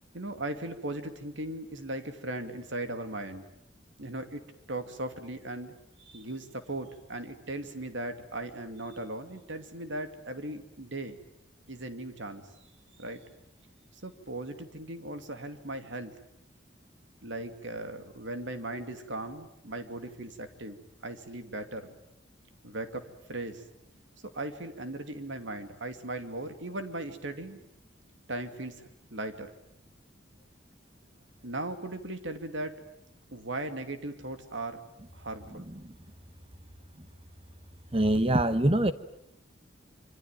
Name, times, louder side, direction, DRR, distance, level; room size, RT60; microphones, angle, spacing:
voice 1, 0.1-3.5 4.0-4.4 4.7-11.2 11.7-12.5 13.0-13.3 14.0-16.2 17.2-22.0 22.6-23.6 24.3-27.6 28.3-29.5 31.4-32.9 33.3-34.8 35.1-35.7, right 2 dB, 75° right, 2.6 m, -38 dB
voice 2, 37.9-38.9, right 1 dB, 30° right, 1.1 m, -24 dB
26.5 x 24.5 x 9.2 m
head